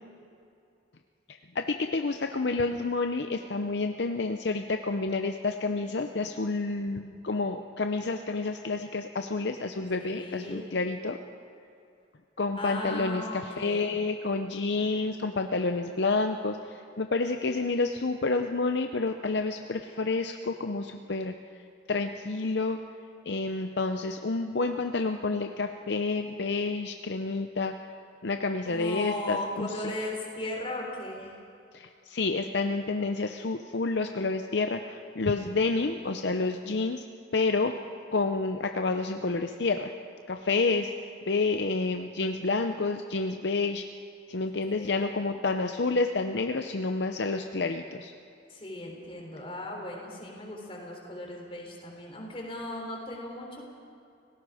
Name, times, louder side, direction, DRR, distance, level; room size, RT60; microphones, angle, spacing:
voice 1, 1.5-11.2 12.4-21.3 21.9-22.8 23.2-27.7 28.2-29.9 31.7-37.0 37.3-37.7 38.1-39.9 40.3-40.9 41.3-43.8 44.3-48.1, left 3 dB, 65° left, 6 dB, 0.7 m, -29 dB
voice 2, 10.0-10.7 12.5-13.9 28.7-31.3 35.3-35.8 44.8-45.1 48.5-53.6, left 1 dB, 30° left, 0 dB, 3.7 m, -37 dB
30.0 x 17.5 x 5.0 m, 2.5 s
head